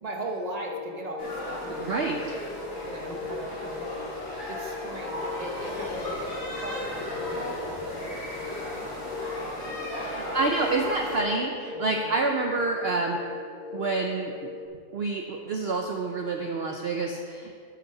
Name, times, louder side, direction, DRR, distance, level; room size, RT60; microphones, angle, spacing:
voice 1, 0.0-2.4 2.8-4.1 4.5-10.4 11.7-12.1, right 1 dB, 30° right, 1 dB, 0.8 m, -39 dB
sound 1, 0.7-14.7, left 6 dB, 70° left, 1.0 m, -40 dB
sound 2, 1.2-11.2, left 1 dB, 50° left, 2.3 m, -36 dB
voice 2, 1.8-2.3 10.1-13.4 13.7-14.5 14.9-17.6, right 3 dB, 75° right, 2 dB, 0.5 m, -28 dB
8.1 x 6.3 x 5.8 m, 2.3 s
omnidirectional pair, 1.8 m